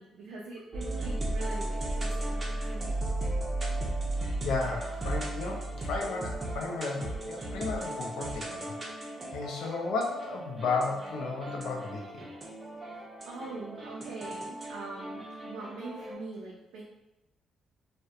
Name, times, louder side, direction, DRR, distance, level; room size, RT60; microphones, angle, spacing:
voice 1, 0.0-3.0 13.3-16.8, right 3 dB, 90° right, -3 dB, 0.3 m, -43 dB
sound 1, 0.7-16.1, right 1 dB, 25° right, 0.5 m, -35 dB
voice 2, 4.4-12.3, left 4 dB, 80° left, 1 dB, 0.4 m, -34 dB
2.7 x 2.1 x 2.3 m, 0.95 s
cardioid pair, 90°, 0 cm